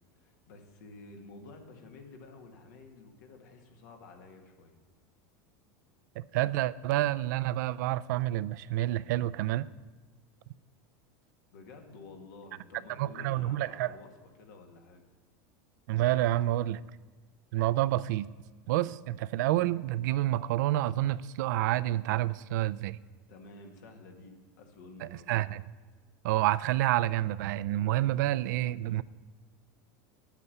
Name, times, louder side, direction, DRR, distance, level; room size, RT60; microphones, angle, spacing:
voice 1, 0.1-4.8 11.5-15.0 23.3-25.4, left 3 dB, 80° left, 3 dB, 1.9 m, -51 dB
voice 2, 6.2-9.7 13.0-13.9 15.9-16.8 17.5-18.3 18.7-23.0 25.0-25.6 26.2-29.0, right 15 dB, 75° right, 16 dB, 0.4 m, -28 dB
9.6 x 8.2 x 6.7 m, 1.3 s
supercardioid pair, 130°, 10 cm